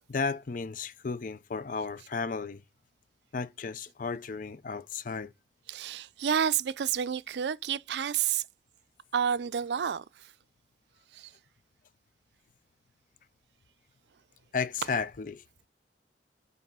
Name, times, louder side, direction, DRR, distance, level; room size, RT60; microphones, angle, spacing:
voice 1, 0.1-2.6 3.3-5.3 14.5-15.4, left 5 dB, 50° left, 0.5 m, -34 dB
voice 2, 5.7-8.4 9.1-10.0 11.2-11.3, right 8 dB, 70° right, 0.4 m, -29 dB
5.9 x 4.0 x 5.4 m
head